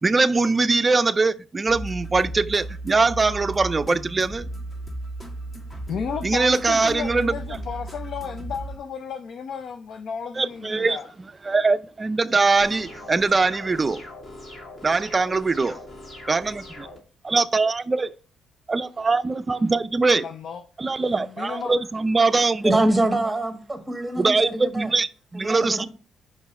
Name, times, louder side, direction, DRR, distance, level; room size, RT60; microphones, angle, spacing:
voice 1, 0.0-4.5 6.2-7.3 10.4-11.0 11.4-14.0 14.8-15.8 16.3-16.9 17.2-18.1 18.7-20.3 20.8-22.8 24.2-25.9, right 3 dB, 25° right, 0.4 m, -22 dB
sound 1, 1.7-8.8, right 1 dB, 30° left, 1.6 m, -35 dB
voice 2, 5.9-11.1 20.2-20.6 21.1-21.8, left 6 dB, 65° left, 0.5 m, -33 dB
sound 2, 12.6-17.0, left 1 dB, 50° left, 2.6 m, -41 dB
voice 3, 22.6-24.9 25.3-25.9, right 1 dB, 5° right, 1.3 m, -24 dB
6.0 x 5.1 x 4.2 m
cardioid pair, 90°, 0 cm